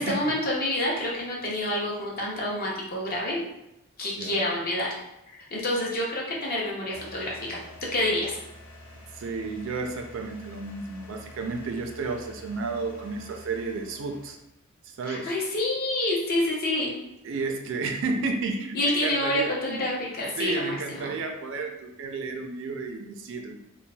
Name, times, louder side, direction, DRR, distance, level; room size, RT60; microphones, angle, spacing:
voice 1, 0.0-3.4 4.0-4.9 5.3-8.4 15.1-16.9 18.7-21.1, left 1 dB, 40° left, -3 dB, 0.7 m, -28 dB
sound 1, 6.9-14.3, left 1 dB, 70° left, 1.3 m, -47 dB
voice 2, 9.1-14.4 15.0-15.3 17.2-19.8 20.4-23.6, right 3 dB, 60° right, 4 dB, 0.3 m, -32 dB
3.1 x 2.3 x 2.2 m, 0.85 s
head